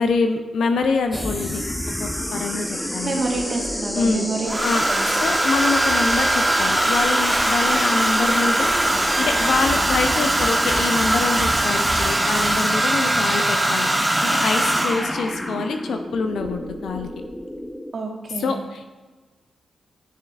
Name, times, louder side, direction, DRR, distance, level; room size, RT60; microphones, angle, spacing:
voice 1, 0.0-1.6 2.0-3.2 4.0-4.3 4.6-4.9 5.2-17.1 18.4-18.9, left 4 dB, 75° left, 6 dB, 0.5 m, -25 dB
Domestic sounds home sounds, 0.8-0.9 2.4-3.0 4.5-15.2 16.4-16.7 17.0-17.3, right 1 dB, 20° right, 0.9 m, -21 dB
sound 1, 1.1-17.9, left 1 dB, 15° left, 0.8 m, -29 dB
voice 2, 3.0-4.6 4.9-5.1 17.9-18.6, right 3 dB, 55° right, 1 dB, 1.4 m, -27 dB
9.4 x 6.5 x 2.4 m, 1.3 s
supercardioid pair, 40°, 0 cm